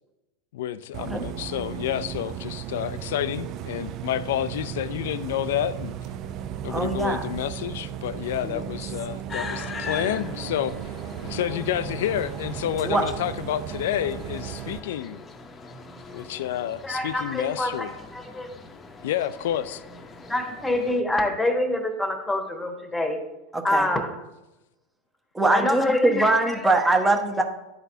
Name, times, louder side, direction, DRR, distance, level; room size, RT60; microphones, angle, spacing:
voice 1, 0.5-5.9 6.6-10.8 11.2-15.2 16.1-17.9 19.0-19.8, left 11 dB, 70° left, 15 dB, 0.4 m, -29 dB
Bus, 0.9-14.8, right 10 dB, 50° right, 0.4 m, -35 dB
voice 2, 6.7-7.2 8.4-8.6 12.8-13.0 23.5-23.9 25.3-27.4, right 2 dB, 10° right, 4 dB, 1.1 m, -22 dB
sound 1, 9.3-21.0, left 4 dB, 25° left, 0.8 m, -41 dB
voice 3, 16.8-18.5 20.3-23.2 23.6-24.1 25.5-26.5, left 1 dB, 10° left, 4 dB, 1.3 m, -26 dB
11.0 x 4.1 x 2.7 m, 0.97 s
hypercardioid pair, 95°, 0 cm